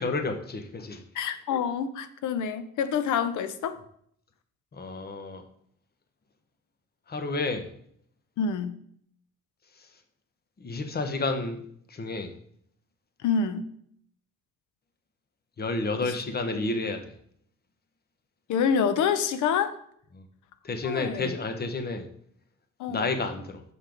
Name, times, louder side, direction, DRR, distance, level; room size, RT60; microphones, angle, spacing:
voice 1, 0.0-1.0 4.7-5.4 7.1-7.7 9.8-9.9 10.6-11.6 11.9-12.4 15.6-17.1 20.1-20.2 20.6-22.1 22.9-23.6, left 3 dB, 30° left, 7 dB, 1.1 m, -30 dB
voice 2, 1.1-3.8 8.4-8.7 13.2-13.7 18.5-19.7 20.8-21.3 22.8-23.1, left 6 dB, 80° left, 11 dB, 0.8 m, -27 dB
6.5 x 5.8 x 5.2 m, 0.66 s
cardioid pair, 90°, 30 cm